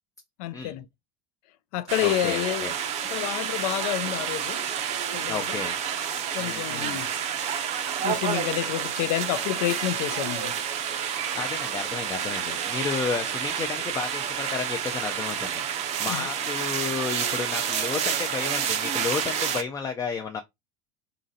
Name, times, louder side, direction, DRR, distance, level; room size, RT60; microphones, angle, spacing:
voice 1, 0.4-0.9 1.7-2.7 3.1-4.6 5.1-5.6 6.3-7.1 8.0-10.5 16.1-16.3, left 14 dB, 75° left, 0.5 m, -29 dB
sound 1, 1.9-19.6, right 8 dB, 35° right, 0.6 m, -29 dB
voice 2, 2.0-2.7 5.3-5.8 6.4-7.0 11.3-20.4, left 5 dB, 15° left, 0.4 m, -32 dB
3.9 x 3.0 x 2.7 m
supercardioid pair, 145°, 19 cm